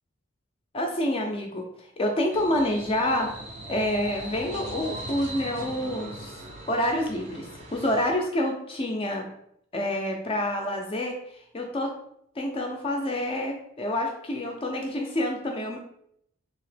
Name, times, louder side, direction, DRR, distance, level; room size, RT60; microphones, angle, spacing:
voice 1, 0.7-1.7 2.0-3.3 3.7-6.4 6.7-9.2 9.7-11.2 11.5-11.9 12.4-15.8, left 1 dB, 25° left, 2 dB, 0.3 m, -27 dB
sound 1, 2.3-8.1, right 1 dB, 30° right, 0.5 m, -40 dB
2.8 x 2.8 x 3.2 m, 0.73 s
head